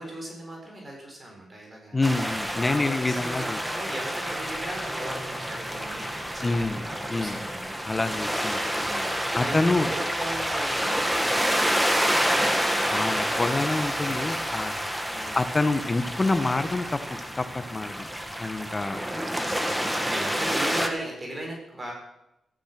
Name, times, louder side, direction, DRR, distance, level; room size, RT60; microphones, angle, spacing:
voice 1, 0.0-2.0 2.6-7.9 8.4-12.3 15.1-15.4 18.8-19.0 19.4-21.9, right 1 dB, 30° right, 0 dB, 6.8 m, -38 dB
voice 2, 1.9-3.6 6.4-7.4 7.8-8.6 9.3-9.9 12.9-14.7 15.3-18.1 18.4-19.0, left 2 dB, 25° left, 10 dB, 1.5 m, -27 dB
sound 1, 2.0-20.9, equal, 5° right, 2.2 m, -28 dB
15.5 x 14.5 x 6.2 m, 0.87 s
cardioid pair, 80°, 0 cm